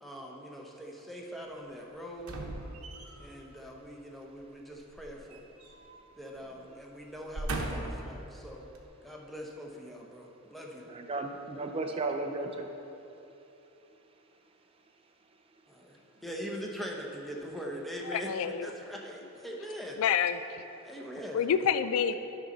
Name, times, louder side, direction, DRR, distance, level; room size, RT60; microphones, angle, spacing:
voice 1, 0.0-2.4 3.2-5.4 6.2-8.7 9.0-10.9 15.7-16.0 16.2-20.0 20.8-21.4, equal, ahead, -1 dB, 0.8 m, -42 dB
sound 1, 2.2-3.4 4.9-6.1 6.4-6.6 7.1-8.1 8.7-8.8, right 2 dB, 85° right, 0.9 m, -38 dB
voice 2, 10.9-12.7 16.3-16.4 20.8-20.9, right 3 dB, 25° right, 4 dB, 0.4 m, -35 dB
voice 3, 18.1-18.7 20.0-20.6 21.3-22.1, left 8 dB, 75° left, 12 dB, 0.3 m, -28 dB
10.5 x 5.4 x 3.9 m, 2.9 s
head